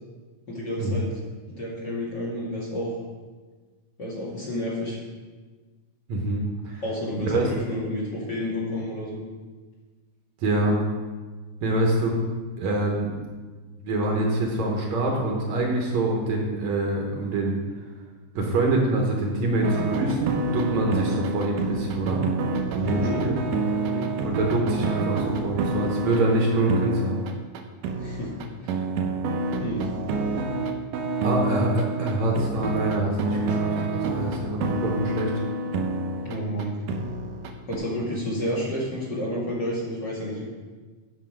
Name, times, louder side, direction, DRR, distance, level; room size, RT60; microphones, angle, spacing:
voice 1, 0.5-1.2 1.5-2.9 4.0-5.0 6.8-9.2 22.8-23.2 23.8-24.1 28.0-28.3 28.6-28.8 29.6-29.9 36.2-36.8 37.7-40.5, equal, 35° left, -5 dB, 2.4 m, -30 dB
voice 2, 6.1-6.8 7.3-7.5 10.4-10.8 11.6-12.2 12.6-13.1 13.8-17.6 18.4-22.2 22.7-23.4 24.2-27.3 31.2-35.3, right 2 dB, 65° right, 0 dB, 2.2 m, -25 dB
sound 1, 19.6-37.8, right 3 dB, 90° right, 2.4 m, -28 dB
9.4 x 6.9 x 4.6 m, 1.4 s
omnidirectional pair, 3.7 m